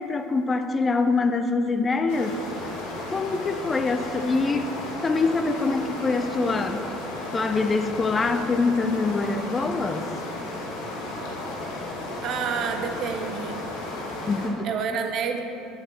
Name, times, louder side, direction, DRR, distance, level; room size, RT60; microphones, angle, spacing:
voice 1, 0.0-2.4 3.1-4.7 5.0-6.9 7.3-10.1 14.2-14.7, left 3 dB, 30° left, 8 dB, 0.5 m, -24 dB
sound 1, 2.1-14.5, left 2 dB, 75° left, 1.3 m, -34 dB
voice 2, 12.2-13.6 14.6-15.4, right 6 dB, 55° right, 5 dB, 0.8 m, -28 dB
8.7 x 8.0 x 3.4 m, 2.8 s
hypercardioid pair, 70°, 0 cm